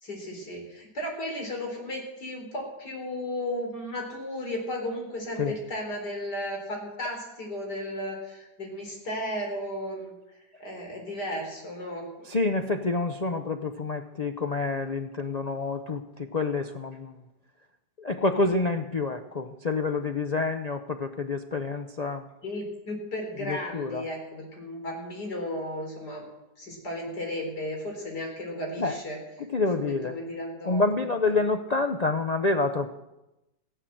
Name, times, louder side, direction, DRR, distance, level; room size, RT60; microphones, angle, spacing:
voice 1, 0.0-10.1 10.6-12.3 22.4-26.3 26.6-29.2 29.8-30.8, left 1 dB, 65° left, 1 dB, 4.6 m, -34 dB
voice 2, 12.2-17.1 18.0-22.3 23.4-24.0 28.8-29.0 29.5-30.2 30.6-32.9, left 3 dB, 85° left, 6 dB, 0.3 m, -28 dB
15.5 x 11.5 x 7.8 m, 0.96 s
omnidirectional pair, 1.9 m